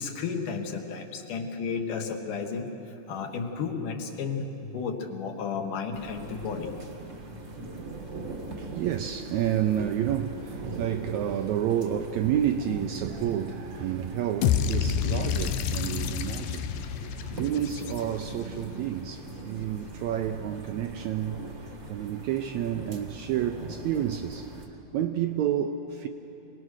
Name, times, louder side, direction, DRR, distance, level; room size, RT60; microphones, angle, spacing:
voice 1, 0.0-6.7 15.9-16.1, left 5 dB, 75° left, 3 dB, 2.8 m, -33 dB
sound 1, 5.9-24.7, right 2 dB, 45° right, 1.0 m, -41 dB
voice 2, 8.3-21.5 21.9-24.5 24.9-26.1, right 10 dB, 80° right, 6 dB, 1.7 m, -30 dB
sound 2, 14.4-18.5, left 8 dB, 90° left, 2.4 m, -28 dB
24.5 x 19.0 x 6.5 m, 2.9 s
omnidirectional pair, 3.8 m